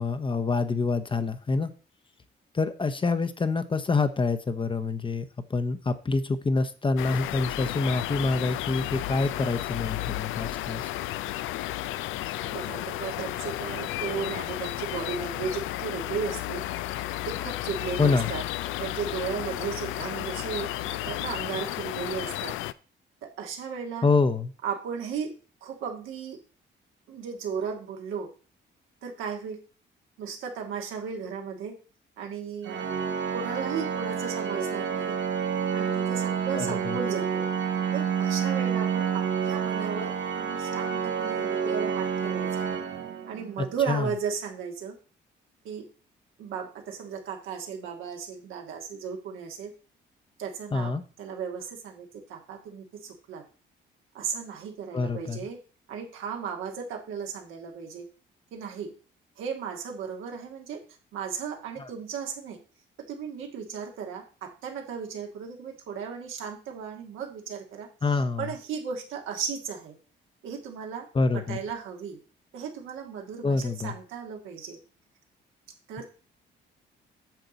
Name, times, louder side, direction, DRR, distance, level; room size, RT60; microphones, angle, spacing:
voice 1, 0.0-1.7 2.5-10.9 18.0-18.3 24.0-24.5 36.5-37.0 43.9-44.1 50.7-51.0 54.9-55.4 68.0-68.5 71.1-71.6 73.4-73.9, left 3 dB, 25° left, 10 dB, 0.8 m, -26 dB
sound 1, 7.0-22.7, left 15 dB, 90° left, 0.4 m, -33 dB
voice 2, 12.4-16.6 17.2-18.4 18.8-22.5 23.2-24.1 24.6-25.3 25.6-26.4 27.1-28.3 29.0-29.6 30.2-31.8 32.2-32.8 33.3-35.2 35.7-37.5 37.9-42.7 43.3-45.0 45.6-45.8 46.4-49.7 50.4-53.4 54.1-55.6 55.9-58.1 58.5-58.9 59.4-60.8 61.1-62.6 63.1-67.9 68.4-70.0 70.4-71.1 71.3-72.2 72.5-74.8 75.9-76.1, right 6 dB, 85° right, 2 dB, 1.8 m, -35 dB
Organ, 32.6-43.6, right 7 dB, 65° right, 1.2 m, -29 dB
9.0 x 6.6 x 4.0 m, 0.37 s
cardioid pair, 90°, 20 cm